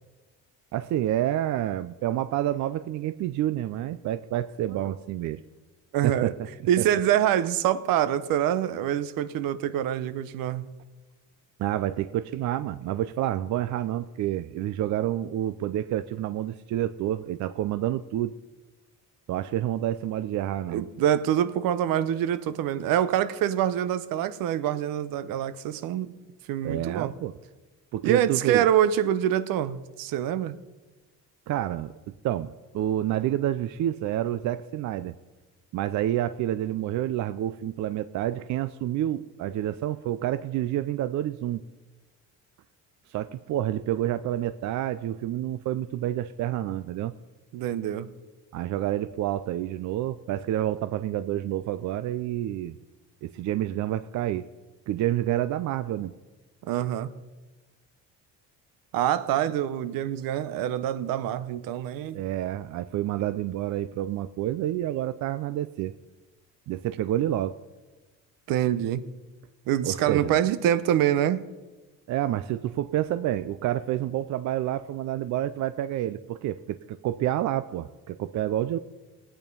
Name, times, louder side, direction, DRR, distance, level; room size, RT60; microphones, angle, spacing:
voice 1, 0.7-5.4 6.0-6.3 6.8-6.9 11.6-18.3 19.3-20.8 26.6-27.3 27.9-28.7 31.5-31.9 32.2-35.1 35.7-41.6 43.1-47.1 48.5-52.7 53.2-54.4 54.9-56.1 62.1-65.9 66.7-67.6 69.8-70.4 72.1-78.8, right 12 dB, 55° right, 12 dB, 0.5 m, -28 dB
voice 2, 4.6-4.9 5.9-6.3 6.7-10.7 20.7-26.2 26.5-27.1 28.0-30.6 47.5-48.1 56.6-57.1 58.9-62.2 68.5-69.0 69.7-71.4, right 11 dB, 75° right, 14 dB, 0.8 m, -25 dB
18.0 x 8.9 x 5.3 m, 1.2 s
cardioid pair, 125°, 34 cm